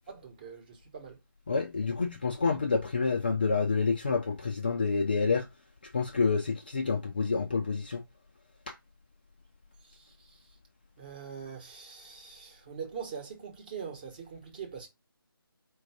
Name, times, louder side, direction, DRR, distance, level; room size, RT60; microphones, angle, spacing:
voice 1, 0.1-1.2 9.9-10.0 11.0-14.9, right 6 dB, 20° right, 1.1 m, -42 dB
voice 2, 1.5-5.4 5.9-8.0, left 4 dB, 25° left, 0.4 m, -28 dB
4.5 x 2.5 x 4.7 m
figure-of-eight pair, 155°, 12 cm